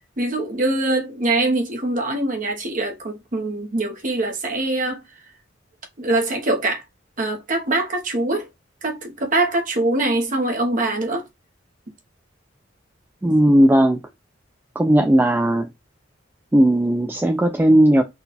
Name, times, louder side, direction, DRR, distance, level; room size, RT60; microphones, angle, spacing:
voice 1, 0.2-5.0 6.0-6.8 7.2-8.5 8.8-11.2, right 2 dB, 45° right, 0.9 m, -23 dB
voice 2, 13.2-14.0 14.8-15.7 16.5-18.0, right 1 dB, 10° right, 0.3 m, -16 dB
3.9 x 2.3 x 4.0 m
head